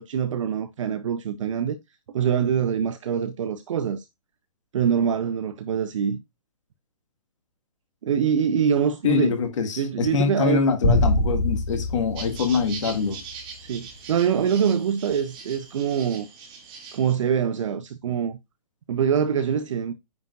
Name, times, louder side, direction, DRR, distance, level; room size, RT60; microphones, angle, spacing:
voice 1, 0.0-1.8 2.1-4.1 4.7-6.2 8.0-9.4 9.8-10.6 13.6-16.3 16.9-18.4 18.9-19.9, right 7 dB, 50° right, 0.7 m, -24 dB
voice 2, 9.0-13.2, left 5 dB, 50° left, 1.8 m, -24 dB
sound 1, 10.8-13.3, left 2 dB, 70° left, 3.6 m, -24 dB
sound 2, 12.2-17.1, right 5 dB, 25° right, 2.2 m, -41 dB
9.4 x 5.1 x 2.4 m
figure-of-eight pair, 120°, 20 cm